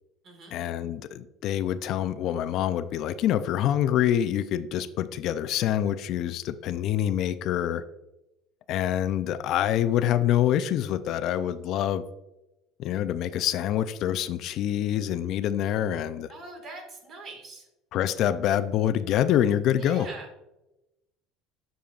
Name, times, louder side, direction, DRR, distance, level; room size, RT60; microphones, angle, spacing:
voice 1, 0.5-7.8 8.7-12.1 12.8-16.3 17.9-20.1, left 11 dB, 50° left, 12 dB, 0.3 m, -26 dB
voice 2, 16.3-17.7 19.8-20.3, right 2 dB, 35° right, 4 dB, 1.7 m, -42 dB
7.6 x 6.7 x 2.4 m, 0.95 s
cardioid pair, 160°, 0 cm